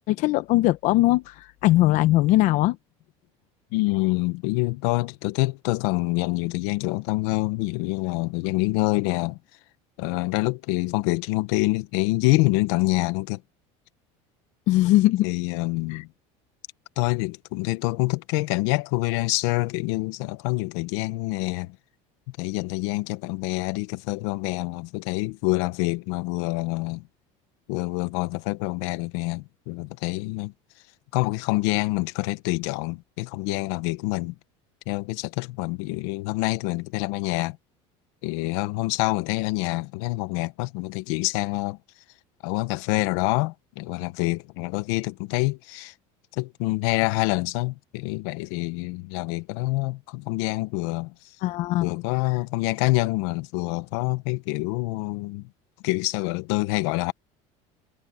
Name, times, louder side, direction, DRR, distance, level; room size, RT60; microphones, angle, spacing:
voice 1, 0.1-2.8 14.7-15.3 15.9-16.0 51.4-51.9, left 17 dB, 55° left, 1.0 m, -20 dB
voice 2, 3.7-9.4 10.0-13.4 15.2-16.1 17.0-21.8 22.4-27.0 27.7-30.5 31.1-34.3 34.9-37.6 38.2-41.8 42.4-45.9 46.4-51.1 51.8-55.5 55.8-57.1, left 21 dB, 80° left, 1.2 m, -26 dB
cardioid pair, 145°, 15 cm